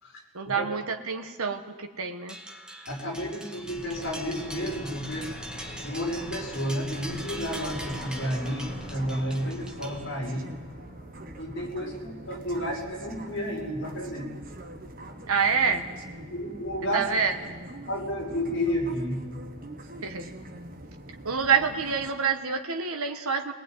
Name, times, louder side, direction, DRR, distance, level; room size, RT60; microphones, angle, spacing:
voice 1, 0.3-2.4 9.4-9.5 15.3-15.9 16.9-17.5 20.0-20.3 21.2-23.5, right 5 dB, 85° right, 5 dB, 1.3 m, -27 dB
sound 1, 2.3-10.5, right 1 dB, 5° right, 1.5 m, -42 dB
voice 2, 2.9-5.3 5.8-10.5 11.4-14.3 16.3-17.0 17.9-19.2, equal, 55° left, -2 dB, 5.9 m, -31 dB
sound 2, 3.8-12.5 12.7-12.8, left 1 dB, 35° left, 2.0 m, -44 dB
sound 3, 7.0-22.1, right 1 dB, 40° right, 1.5 m, -43 dB
22.5 x 19.5 x 9.4 m, 1.4 s
head